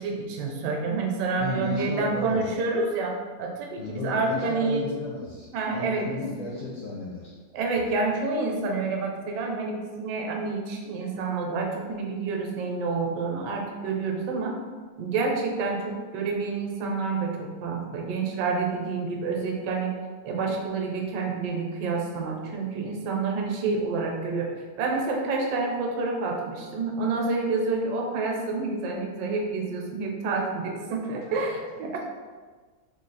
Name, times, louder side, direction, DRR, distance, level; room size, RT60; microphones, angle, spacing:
voice 1, 0.0-4.8 5.5-6.3 7.5-14.6 15.0-20.0 20.2-24.5 24.8-32.1, right 4 dB, 75° right, 1 dB, 1.2 m, -28 dB
voice 2, 1.4-2.5 3.8-7.4 31.3-31.6, left 3 dB, 70° left, -5 dB, 0.7 m, -34 dB
3.6 x 2.3 x 3.8 m, 1.4 s
omnidirectional pair, 1.9 m